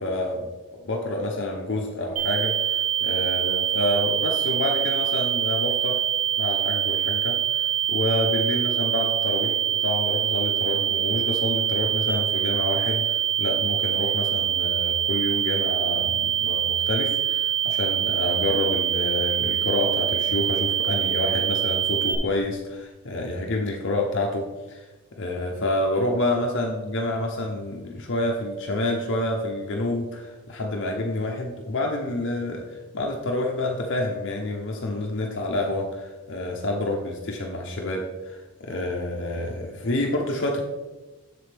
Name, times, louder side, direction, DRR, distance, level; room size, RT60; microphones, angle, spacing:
voice 1, 0.0-6.0 6.4-9.6 9.8-24.9 25.2-40.6, left 1 dB, 55° left, 0 dB, 0.8 m, -28 dB
sound 1, 2.2-22.2, right 10 dB, 80° right, 1.4 m, -24 dB
7.7 x 6.7 x 3.4 m, 1.2 s
head